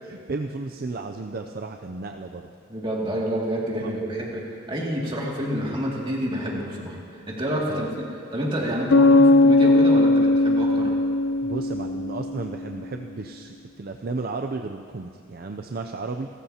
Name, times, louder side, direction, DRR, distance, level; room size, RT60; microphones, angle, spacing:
voice 1, 0.0-2.5 3.8-3.9 7.7-7.9 11.4-16.3, right 3 dB, 45° right, 4 dB, 0.5 m, -33 dB
voice 2, 2.7-7.0 7.3-7.9 8.3-10.9, equal, 25° right, -3 dB, 2.4 m, -28 dB
Bass guitar, 8.9-12.6, left 2 dB, 60° left, 0.4 m, -18 dB
29.5 x 13.5 x 2.9 m, 2.6 s
head